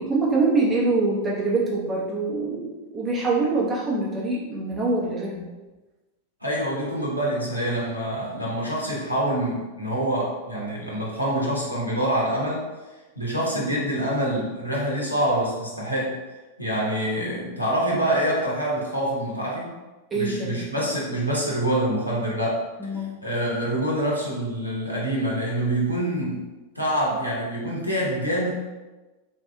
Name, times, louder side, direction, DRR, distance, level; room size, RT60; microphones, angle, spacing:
voice 1, 0.0-5.5 20.1-20.5 22.8-23.1, right 3 dB, 15° right, -6 dB, 0.9 m, -24 dB
voice 2, 6.4-12.7 13.2-16.2 16.6-19.7 20.1-22.6 23.2-26.5 26.7-28.5, right 1 dB, 85° right, -4 dB, 0.8 m, -26 dB
3.7 x 2.6 x 2.2 m, 1.2 s
figure-of-eight pair, 90°, 0 cm